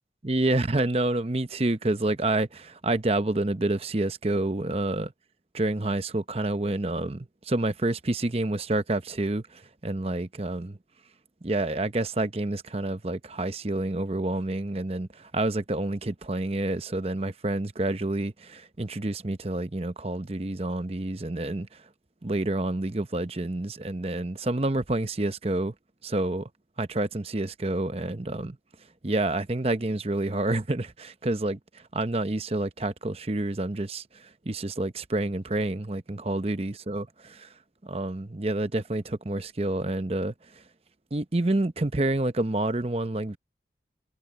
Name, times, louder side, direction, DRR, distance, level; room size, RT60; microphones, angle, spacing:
voice 1, 0.2-5.1 5.5-10.8 11.4-21.8 22.2-25.7 26.0-26.5 26.8-28.6 29.0-37.5 37.8-40.6 41.1-43.4, right 2 dB, 35° right, 0.8 m, -28 dB
head